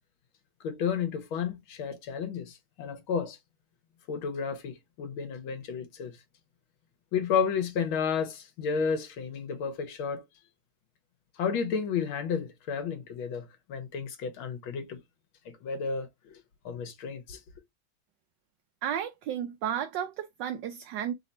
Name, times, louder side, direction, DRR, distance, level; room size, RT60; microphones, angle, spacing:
voice 1, 0.6-3.4 4.1-6.1 7.1-10.2 11.4-15.0 15.5-16.1 16.7-17.4, left 6 dB, 80° left, 1.9 m, -32 dB
voice 2, 18.8-21.1, right 9 dB, 70° right, 1.1 m, -33 dB
4.0 x 2.6 x 4.2 m
omnidirectional pair, 2.2 m